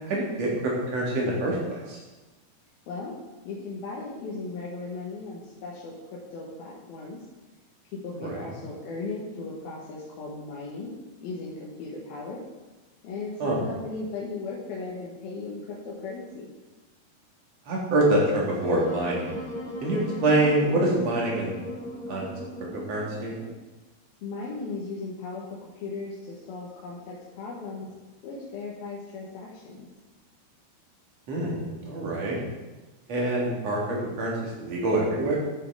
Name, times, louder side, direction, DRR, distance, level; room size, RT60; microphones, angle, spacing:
voice 1, 0.0-2.0 8.1-8.4 13.4-13.6 17.7-19.4 19.8-21.5 22.1-22.2 22.9-23.3 31.3-32.4 33.1-35.4, right 1 dB, 45° right, -3 dB, 3.4 m, -26 dB
voice 2, 3.4-7.2 7.9-10.9 11.2-12.4 13.0-16.5 24.2-27.9 28.2-29.9, left 3 dB, 70° left, -5 dB, 3.2 m, -37 dB
Wind instrument woodwind instrument, 18.6-23.7, left 1 dB, 15° left, 1.7 m, -37 dB
13.0 x 6.8 x 4.9 m, 1.1 s
omnidirectional pair, 4.6 m